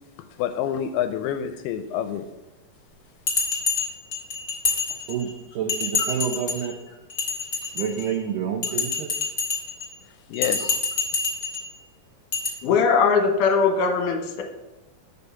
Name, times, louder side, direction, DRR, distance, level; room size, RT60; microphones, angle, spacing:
voice 1, 0.4-2.3 10.3-10.8, left 9 dB, 80° left, 8 dB, 2.4 m, -27 dB
Bell, 3.3-5.3 5.7-6.7 7.1-8.1 8.6-9.9 10.3-11.7 12.3-12.5, left 4 dB, 25° left, 2.4 m, -27 dB
voice 2, 4.9-6.7 7.7-9.1, right 7 dB, 80° right, 3 dB, 1.9 m, -29 dB
voice 3, 12.6-14.4, left 5 dB, 65° left, 4 dB, 2.3 m, -20 dB
8.0 x 5.4 x 5.6 m, 1.1 s
omnidirectional pair, 4.6 m